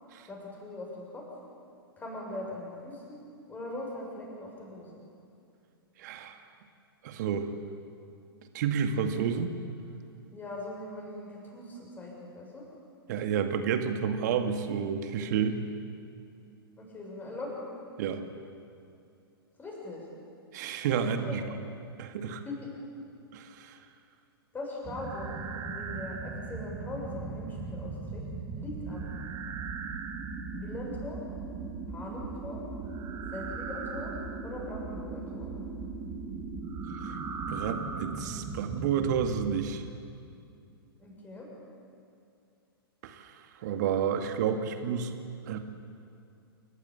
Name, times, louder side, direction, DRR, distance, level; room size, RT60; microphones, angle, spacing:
voice 1, 0.3-1.2 2.0-3.2 3.5-5.0 10.3-12.6 16.8-17.6 19.6-20.1 21.1-21.5 22.4-22.6 24.5-28.2 28.5-29.1 30.5-31.2 31.9-32.6 33.3-34.1 34.4-35.5 41.0-41.5, left 2 dB, 15° left, -2 dB, 6.9 m, -41 dB
voice 2, 6.0-6.4 7.0-7.5 8.5-9.5 13.1-15.6 18.0-18.2 20.5-21.4 22.0-22.4 23.3-23.8 37.0-37.2 37.5-39.8 43.0-43.3 43.6-45.2 45.5-45.6, right 7 dB, 45° right, 7 dB, 2.1 m, -30 dB
sound 1, 24.8-39.7, right 4 dB, 25° right, 2.5 m, -38 dB
28.5 x 14.5 x 8.7 m, 2.5 s
figure-of-eight pair, 110°, 13 cm